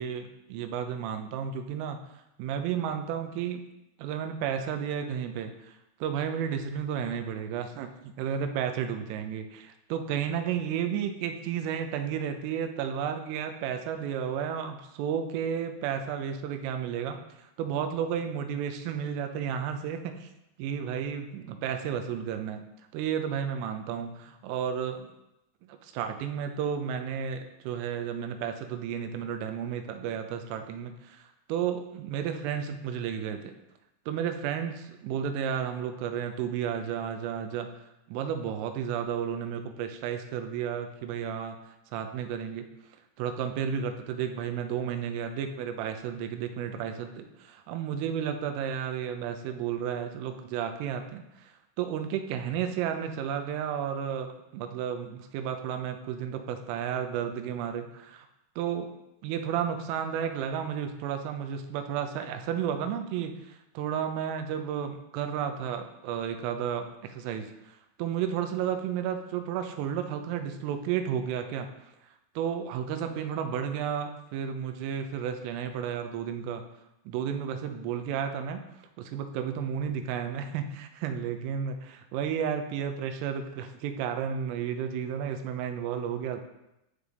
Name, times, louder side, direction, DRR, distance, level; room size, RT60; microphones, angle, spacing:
voice 1, 0.0-2.0 2.4-3.6 4.0-5.7 6.0-20.3 20.6-22.6 22.9-25.1 25.6-33.5 34.1-37.8 38.1-41.6 41.9-42.7 43.2-58.3 58.6-58.9 59.2-71.7 72.4-76.6 77.1-78.6 79.0-86.4, right 8 dB, 85° right, 6 dB, 3.2 m, -32 dB
11.5 x 4.9 x 3.3 m, 0.90 s
omnidirectional pair, 5.7 m